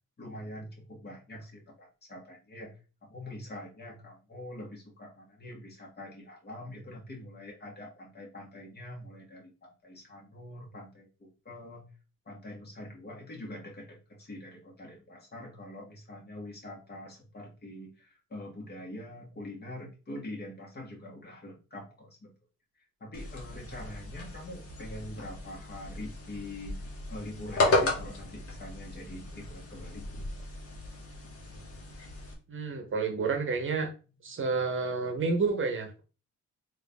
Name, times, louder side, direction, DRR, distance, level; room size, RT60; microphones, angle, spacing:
voice 1, 0.2-2.7 3.0-11.8 12.2-22.3 23.0-26.8 27.1-30.1, left 1 dB, 35° left, -1 dB, 1.7 m, -44 dB
sound 1, 23.1-32.3, left 2 dB, 50° left, 1.3 m, -34 dB
voice 2, 32.5-33.9 34.2-36.0, right 4 dB, 40° right, 5 dB, 0.9 m, -30 dB
3.9 x 2.7 x 3.4 m, 0.34 s
cardioid pair, 90°, 30 cm